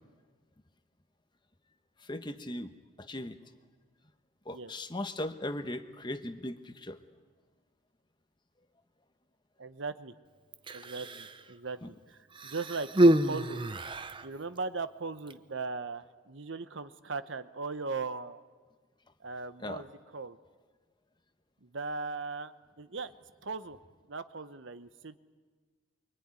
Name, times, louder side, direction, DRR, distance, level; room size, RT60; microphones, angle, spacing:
voice 1, 2.0-2.7 3.0-3.4 4.4-7.0 11.8-11.9 19.6-19.8, left 1 dB, 20° left, 9 dB, 1.1 m, -38 dB
voice 2, 9.6-10.1 10.7-13.6 14.2-18.4 19.2-20.4 21.6-23.1 23.4-23.8 24.1-25.2, right 4 dB, 65° right, 12 dB, 1.0 m, -38 dB
Human voice, 10.5-11.4 12.3-14.3 15.2-15.3, right 1 dB, 25° right, 0.8 m, -27 dB
24.5 x 24.5 x 9.7 m, 1.5 s
head